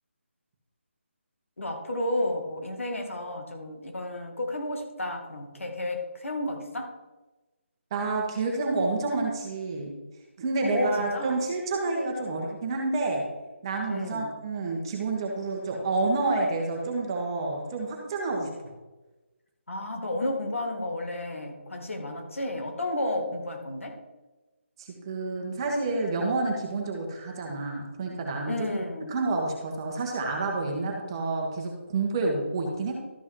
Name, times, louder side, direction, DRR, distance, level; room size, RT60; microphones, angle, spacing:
voice 1, 1.6-6.9 10.6-11.4 13.9-14.3 19.7-24.0 28.5-29.2, left 1 dB, 85° left, 3 dB, 2.3 m, -32 dB
voice 2, 7.9-9.9 10.4-13.3 13.6-18.7 24.8-28.5 29.1-32.9, right 3 dB, 20° right, 0 dB, 1.6 m, -29 dB
13.0 x 5.4 x 4.8 m, 1.1 s
figure-of-eight pair, 170°, 7 cm